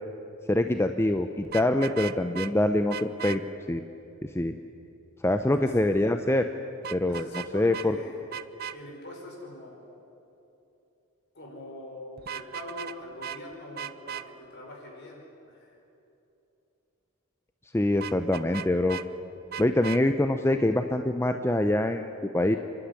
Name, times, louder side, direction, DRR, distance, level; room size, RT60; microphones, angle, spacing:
voice 1, 0.5-3.4 3.7-3.8 4.3-4.5 5.2-6.5 6.9-8.0 17.7-19.0 19.6-22.6, left 1 dB, 10° left, 7 dB, 0.6 m, -25 dB
Vehicle horn car horn honking, 1.4-2.5 2.9-3.4 6.8-7.5 7.7-7.9 8.3-8.8 12.2-13.0 13.2-13.4 13.8-14.2 18.0-19.1 19.5-20.0, right 9 dB, 45° right, 0.6 m, -37 dB
voice 2, 7.1-8.1 8.7-9.8 11.3-15.2 15.5-15.7, left 1 dB, 50° left, 0 dB, 5.3 m, -43 dB
28.5 x 12.0 x 9.7 m, 2.9 s
head